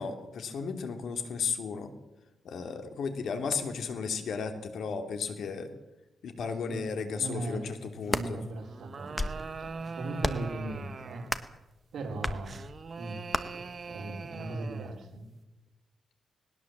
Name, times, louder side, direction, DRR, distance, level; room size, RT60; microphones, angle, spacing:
voice 1, 0.0-1.9 2.4-5.7 6.2-8.4, left 5 dB, 75° left, 6 dB, 2.9 m, -34 dB
voice 2, 6.7-11.3 11.9-12.6 12.9-15.2, right 2 dB, 70° right, 1 dB, 4.5 m, -39 dB
sound 1, 7.9-8.3 8.9-9.5 10.2-10.5 11.3-11.6 12.2-12.4 13.3-13.4, left 2 dB, 15° left, 1.4 m, -31 dB
sound 2, 8.6-11.4 12.4-15.0, right 4 dB, 40° right, 1.4 m, -42 dB
20.0 x 19.0 x 7.6 m, 0.99 s
cardioid pair, 115°, 0 cm